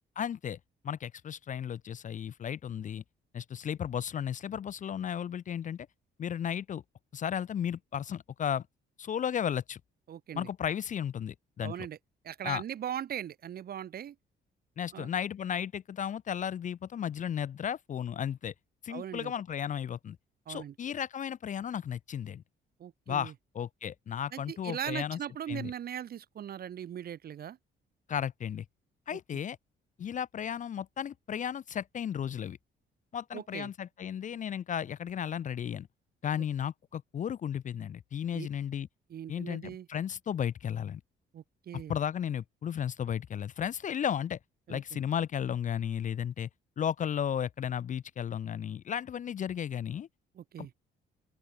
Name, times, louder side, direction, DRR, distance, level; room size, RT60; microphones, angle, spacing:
voice 1, 0.2-0.6 0.8-3.0 3.3-5.9 6.2-6.8 7.1-8.6 9.0-9.8 10.3-11.7 12.4-12.6 14.8-18.5 18.8-20.2 20.5-22.4 23.1-25.2 25.5-25.7 28.1-28.7 29.1-29.6 30.0-32.6 33.1-35.9 36.2-38.9 39.3-41.0 41.7-44.4 44.7-46.5 46.8-50.1, left 9 dB, 40° left, 0.4 m, -34 dB
voice 2, 10.1-10.5 11.6-12.0 12.2-14.2 14.9-15.1 18.9-19.3 20.5-20.7 22.8-23.3 24.3-27.6 29.1-29.2 33.3-33.7 38.3-38.5 39.1-39.9 41.3-42.0 44.7-44.8 50.4-50.7, right 10 dB, 50° right, 0.6 m, -39 dB
open air
cardioid pair, 90°, 20 cm